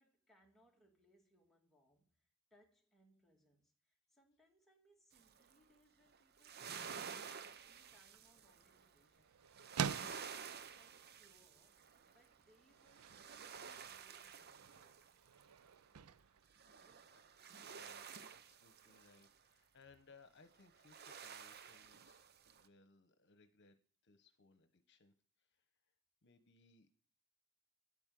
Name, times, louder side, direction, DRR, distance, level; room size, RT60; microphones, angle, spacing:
voice 1, 0.0-15.0 16.6-17.2, equal, ahead, 2.3 m, -73 dB
sound 1, 5.1-5.5 6.1-8.9 9.5-12.3 12.7-15.7 16.5-19.3 20.6-22.7, right 7 dB, 50° right, 0.8 m, -52 dB
Engine, 6.5-16.1, right 1 dB, 15° right, 2.5 m, -85 dB
sound 2, 7.7-17.5, right 7 dB, 85° right, 0.5 m, -49 dB
voice 2, 16.0-16.7 17.1-17.2 17.7-22.3 22.5-23.8 24.0-25.7 26.2-26.9, left 4 dB, 55° left, 1.2 m, -67 dB
10.0 x 8.8 x 7.7 m
head